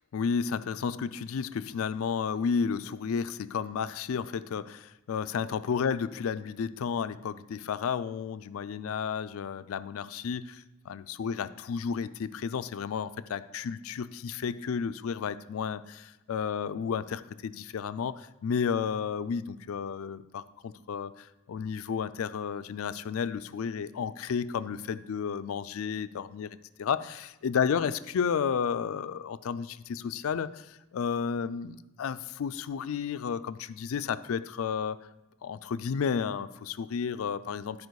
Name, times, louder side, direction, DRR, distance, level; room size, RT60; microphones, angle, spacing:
voice 1, 0.1-35.0 35.4-37.9, left 6 dB, 75° left, 14 dB, 0.4 m, -32 dB
10.5 x 4.8 x 4.7 m, 0.99 s
head